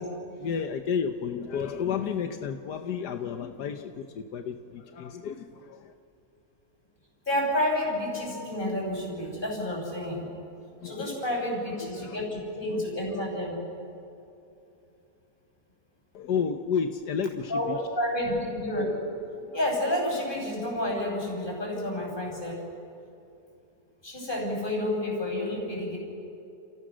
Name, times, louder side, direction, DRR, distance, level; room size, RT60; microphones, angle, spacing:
voice 1, 0.0-5.9 10.8-11.4 11.8-12.2 12.7-12.8 13.1-13.2 16.1-17.8 19.4-19.6, left 6 dB, 80° left, 6 dB, 1.5 m, -32 dB
voice 2, 7.3-10.3 10.8-13.6 17.5-19.0 19.5-22.6 24.0-26.0, left 1 dB, 30° left, 0 dB, 6.6 m, -30 dB
30.0 x 29.5 x 6.3 m, 2.8 s
omnidirectional pair, 1.7 m